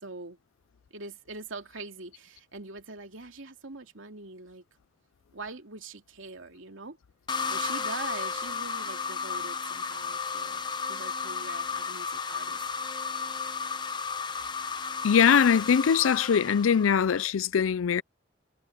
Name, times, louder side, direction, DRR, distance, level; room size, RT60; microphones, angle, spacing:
voice 1, 0.0-0.4 0.9-4.6 5.3-7.0 7.5-12.6, right 3 dB, 80° right, 2.6 m, -43 dB
sound 1, 7.3-17.3, left 5 dB, 20° left, 0.9 m, -33 dB
voice 2, 15.0-18.0, left 7 dB, 85° left, 0.4 m, -22 dB
head